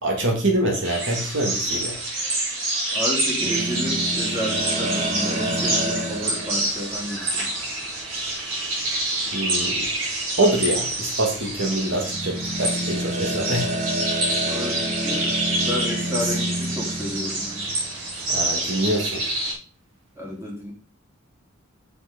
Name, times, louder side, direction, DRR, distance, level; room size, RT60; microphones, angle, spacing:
voice 1, 0.0-2.0 9.3-9.9 10.4-13.9 18.3-19.3, right 1 dB, 60° right, 1 dB, 2.4 m, -25 dB
sound 1, 0.8-19.5, right 2 dB, 80° right, 5.3 m, -27 dB
voice 2, 2.9-7.5 14.5-15.4 15.7-17.7 20.2-20.7, equal, 15° right, -2 dB, 3.3 m, -31 dB
sound 2, 3.4-19.6, right 1 dB, 35° right, 1.2 m, -31 dB
8.2 x 7.2 x 5.3 m, 0.38 s
head